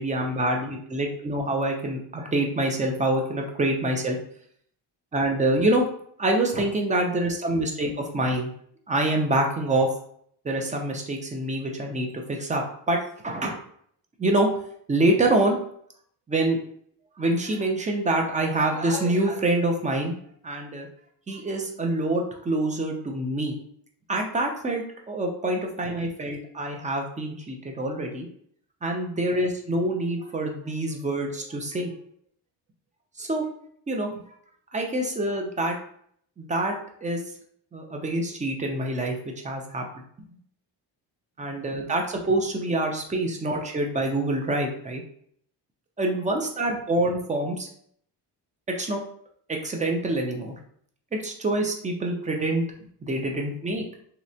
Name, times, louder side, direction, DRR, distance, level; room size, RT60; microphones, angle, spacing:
voice 1, 0.0-4.2 5.1-5.8 6.2-8.5 8.9-9.9 10.4-13.0 13.2-13.6 14.2-14.5 14.9-15.6 16.3-16.6 17.2-20.2 20.4-20.9 21.3-23.6 24.1-28.3 28.8-31.9 33.2-33.5 33.9-34.2 34.7-35.8 36.4-36.8 37.0-37.2 37.7-39.2 39.4-40.0 41.4-45.0 46.0-47.7 48.8-49.0 49.5-50.5 51.1-52.6 53.0-53.8, right 1 dB, 20° right, 2 dB, 0.4 m, -26 dB
3.2 x 2.8 x 2.7 m, 0.64 s
wide cardioid pair, 165°, 45 cm